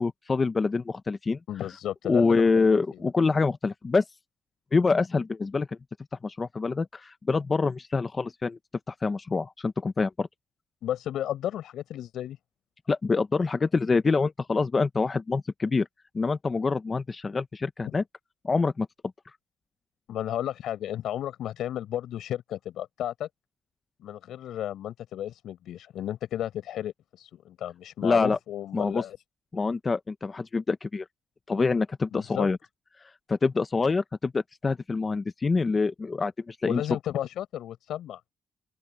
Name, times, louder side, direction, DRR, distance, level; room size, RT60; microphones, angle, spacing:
voice 1, 0.0-1.4 2.1-4.0 4.7-5.7 6.2-8.6 8.9-10.3 12.9-15.9 16.1-18.0 18.4-18.9 28.0-28.4 28.7-29.0 29.5-31.1 31.5-32.6 33.3-36.8, left 4 dB, 20° left, 0.8 m, -26 dB
voice 2, 1.5-3.0 10.8-12.4 17.8-17.9 20.1-23.3 24.0-29.2 32.1-32.5 36.6-38.2, left 11 dB, 70° left, 7.6 m, -33 dB
open air
cardioid pair, 160°, 0 cm